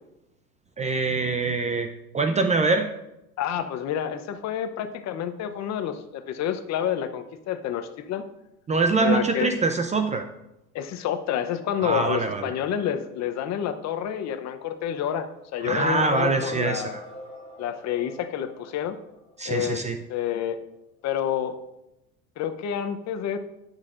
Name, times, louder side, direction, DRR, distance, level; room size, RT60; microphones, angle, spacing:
voice 1, 0.8-1.9 2.1-2.9 8.7-10.2 11.8-12.5 15.6-17.0 19.4-20.0, right 3 dB, 15° right, 7 dB, 0.5 m, -24 dB
voice 2, 3.4-8.2 9.0-9.5 10.7-17.0 17.6-19.0 19.5-19.8 20.1-20.6 21.0-21.6 22.4-23.4, left 9 dB, 40° left, 9 dB, 0.8 m, -28 dB
sound 1, 15.7-19.7, left 2 dB, 15° left, 2.8 m, -41 dB
19.5 x 6.5 x 2.5 m, 0.91 s
hypercardioid pair, 100°, 44 cm